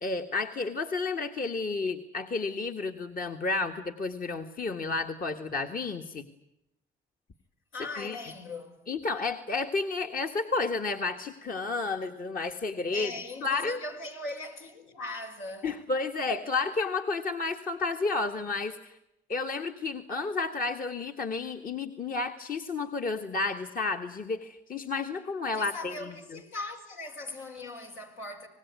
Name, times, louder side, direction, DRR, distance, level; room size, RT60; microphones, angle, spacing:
voice 1, 0.0-6.3 8.0-8.2 8.9-13.1 13.4-13.8 15.6-19.0 19.3-26.4, left 3 dB, 45° left, 1.7 m, -31 dB
voice 2, 7.7-8.9 12.9-15.7 25.5-28.5, left 2 dB, 80° left, 5.5 m, -40 dB
25.5 x 20.0 x 9.5 m
cardioid pair, 90°, 20 cm